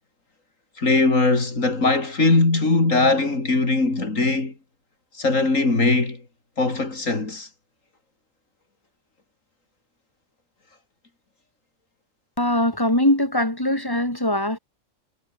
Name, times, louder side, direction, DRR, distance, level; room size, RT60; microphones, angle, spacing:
voice 1, 0.8-4.5 5.1-6.2 6.6-7.5, left 3 dB, 90° left, 4.4 m, -20 dB
voice 2, 12.4-14.6, left 1 dB, 15° left, 5.8 m, -21 dB
omnidirectional pair, 1.3 m